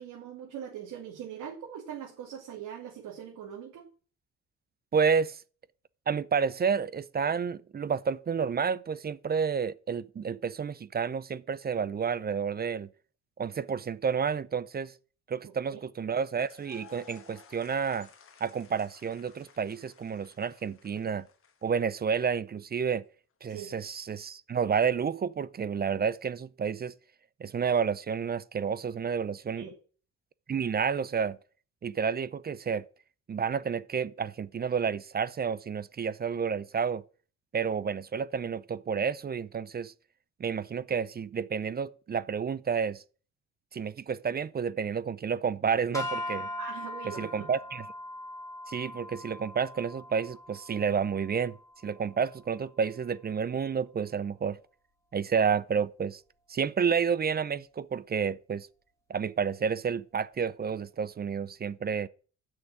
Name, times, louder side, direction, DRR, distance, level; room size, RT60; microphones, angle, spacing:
voice 1, 0.0-3.9 15.4-15.8 23.5-23.7 29.6-29.7 46.6-47.5, right 9 dB, 85° right, 2.7 m, -42 dB
voice 2, 4.9-5.4 6.1-12.9 13.4-14.9 15.3-18.1 18.4-21.3 21.6-23.0 23.4-26.9 27.4-29.7 30.5-31.4 31.8-32.8 33.3-37.0 37.5-39.9 40.4-43.0 43.7-46.5 47.1-47.8 48.7-51.6 51.8-54.6 55.1-56.2 56.5-58.7 59.1-62.1, right 6 dB, 30° right, 0.5 m, -30 dB
sound 1, 16.3-22.3, left 6 dB, 45° left, 1.6 m, -56 dB
sound 2, 45.9-52.3, left 1 dB, 10° left, 3.1 m, -40 dB
9.5 x 6.4 x 8.5 m
cardioid pair, 90°, 30 cm